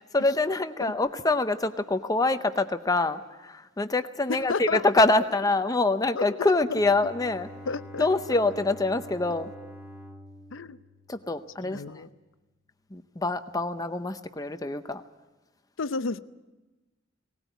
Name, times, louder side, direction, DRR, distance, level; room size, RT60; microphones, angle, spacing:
voice 1, 0.1-7.5 8.0-9.5 11.1-12.0 12.9-15.0, left 2 dB, 20° left, 10 dB, 0.7 m, -25 dB
voice 2, 4.3-4.8 6.2-6.3 6.7-6.8 7.7-8.4 10.5-10.8 11.6-12.1 15.8-16.2, left 4 dB, 75° left, 14 dB, 0.7 m, -32 dB
Bowed string instrument, 6.6-11.8, equal, 10° right, 1.9 m, -46 dB
19.5 x 18.5 x 9.2 m, 1.2 s
head